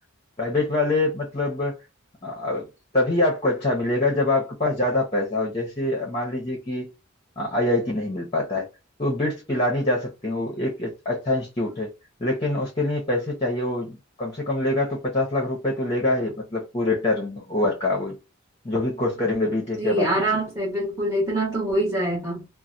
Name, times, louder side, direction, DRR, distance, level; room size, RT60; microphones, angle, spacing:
voice 1, 0.4-1.8 2.2-2.7 2.9-6.9 7.4-8.7 9.0-11.9 12.2-18.2 18.6-20.1, left 2 dB, 25° left, 0.8 m, -25 dB
voice 2, 19.8-22.5, right 1 dB, 15° right, 1.1 m, -24 dB
3.1 x 2.1 x 2.6 m
head